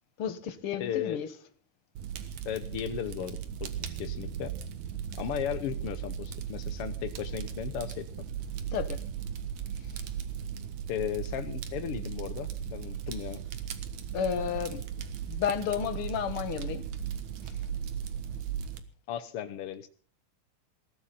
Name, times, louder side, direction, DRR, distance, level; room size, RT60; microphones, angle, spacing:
voice 1, 0.2-1.3 8.7-9.0 14.1-16.8 17.4-17.5, left 8 dB, 55° left, 1.8 m, -32 dB
voice 2, 0.8-1.2 2.4-3.7 4.0-4.6 5.2-8.1 10.9-13.4 19.1-19.9, left 10 dB, 75° left, 1.3 m, -35 dB
Fire, 2.0-18.8, right 8 dB, 65° right, 2.6 m, -37 dB
sound 1, 3.8-12.7, right 8 dB, 45° right, 1.6 m, -51 dB
21.0 x 15.5 x 4.2 m
omnidirectional pair, 3.9 m